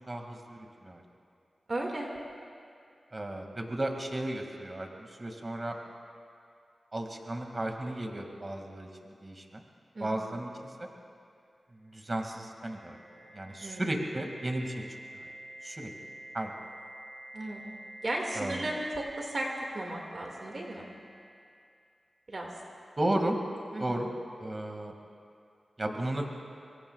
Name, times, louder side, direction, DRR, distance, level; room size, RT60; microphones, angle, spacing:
voice 1, 0.1-1.0 3.1-5.8 6.9-9.6 10.0-10.5 10.8-10.9 11.8-13.0 13.3-14.8 15.6-15.9 16.3-16.5 18.3-18.6 23.0-23.3 23.8-24.1 24.4-24.9 25.8-26.3, right 1 dB, 40° right, 2 dB, 2.2 m, -34 dB
voice 2, 1.7-2.1 9.9-10.1 13.6-13.8 17.3-17.6 18.0-19.5 19.7-20.9 22.3-22.5 23.7-24.0, right 1 dB, 55° right, -1 dB, 2.1 m, -35 dB
sound 1, 11.9-21.8, right 1 dB, 80° right, 5.1 m, -49 dB
25.5 x 23.0 x 2.4 m, 2.4 s
cardioid pair, 40°, 0 cm